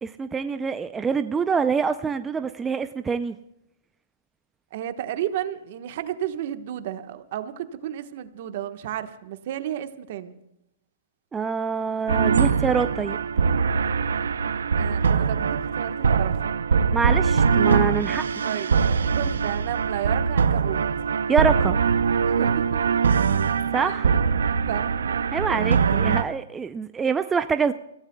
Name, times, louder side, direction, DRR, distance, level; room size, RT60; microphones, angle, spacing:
voice 1, 0.0-3.4 11.3-13.2 16.9-18.2 21.3-21.8 23.7-24.1 25.3-27.7, right 5 dB, 15° right, 10 dB, 0.5 m, -25 dB
voice 2, 4.7-10.4 14.7-16.5 18.4-18.7 19.1-20.8 22.3-23.0 23.8-24.1 24.7-24.9, right 11 dB, 55° right, 9 dB, 1.3 m, -32 dB
sound 1, 12.1-26.2, right 6 dB, 90° right, 0.6 m, -22 dB
29.5 x 16.0 x 2.3 m, 0.86 s
hypercardioid pair, 140°, 0 cm